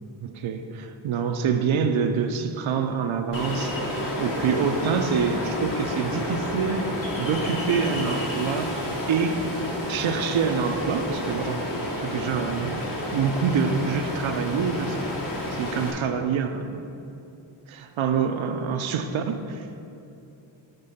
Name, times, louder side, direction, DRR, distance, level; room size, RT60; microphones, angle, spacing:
voice 1, 0.2-6.9 7.2-8.7 9.1-9.4 9.9-11.7 12.0-12.8 13.1-15.1 15.5-16.8 17.7-19.8, right 6 dB, 85° right, 7 dB, 0.5 m, -26 dB
Ocean, 3.3-15.9, left 1 dB, 45° left, 1.2 m, -30 dB
6.8 x 3.7 x 5.5 m, 2.7 s
wide cardioid pair, 95°, 46 cm